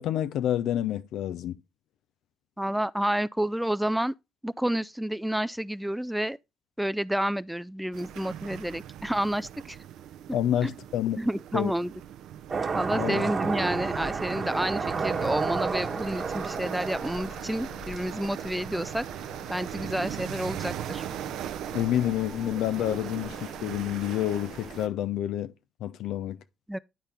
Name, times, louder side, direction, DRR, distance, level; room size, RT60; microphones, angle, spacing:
voice 1, 0.0-1.5 10.3-11.2 11.5-11.7 12.9-13.3 21.7-25.5 25.8-26.4, left 11 dB, 75° left, 0.5 m, -28 dB
voice 2, 2.6-4.1 4.4-6.4 6.8-9.8 10.6-10.7 11.2-11.9 12.7-19.0 19.5-21.0 26.7-26.8, right 1 dB, 5° right, 0.3 m, -29 dB
sound 1, 7.9-24.9, right 11 dB, 75° right, 0.6 m, -39 dB
sound 2, 12.5-18.5, right 5 dB, 40° right, 1.2 m, -31 dB
sound 3, 13.6-24.9, left 4 dB, 50° left, 1.1 m, -48 dB
11.0 x 4.2 x 3.4 m
supercardioid pair, 55°, 0 cm